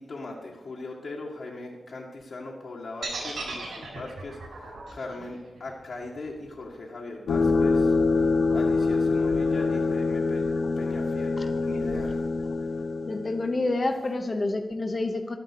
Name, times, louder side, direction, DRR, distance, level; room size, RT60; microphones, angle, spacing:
voice 1, 0.0-12.3, left 2 dB, 60° left, -3 dB, 1.8 m, -39 dB
sound 1, 3.0-7.1, right 3 dB, 75° right, 4.9 m, -38 dB
sound 2, 7.3-13.5, left 3 dB, 85° left, 0.9 m, -25 dB
voice 2, 13.1-15.4, left 2 dB, 30° left, 6 dB, 0.9 m, -28 dB
12.0 x 10.0 x 6.8 m, 1.2 s
wide cardioid pair, 155°, 0 cm